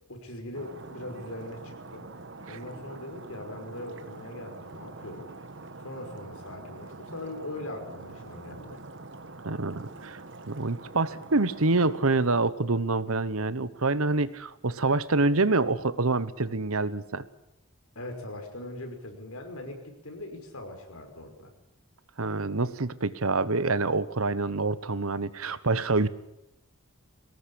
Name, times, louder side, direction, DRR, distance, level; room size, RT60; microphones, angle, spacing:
voice 1, 0.1-2.1 2.5-5.3 5.8-8.8 18.0-21.5, left 1 dB, 80° left, 4 dB, 5.5 m, -41 dB
Stream, 0.5-12.4, right 3 dB, 55° right, 1.4 m, -45 dB
voice 2, 9.4-10.2 10.5-17.2 22.2-26.1, right 3 dB, 75° right, 15 dB, 1.1 m, -26 dB
23.0 x 18.5 x 8.7 m, 0.84 s
head